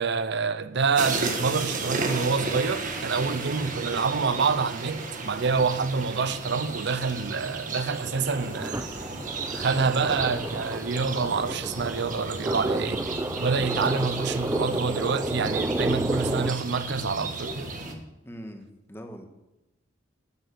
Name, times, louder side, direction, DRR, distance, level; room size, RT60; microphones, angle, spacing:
voice 1, 0.0-8.8 9.5-13.0 13.4-17.7, right 5 dB, 60° right, 0.6 m, -27 dB
sound 1, 0.9-17.9, right 3 dB, 40° right, 1.6 m, -34 dB
sound 2, 7.9-16.5, right 1 dB, 15° right, 0.5 m, -31 dB
voice 2, 12.3-13.0 18.2-19.3, equal, 10° left, 1.4 m, -43 dB
13.0 x 7.8 x 6.9 m
head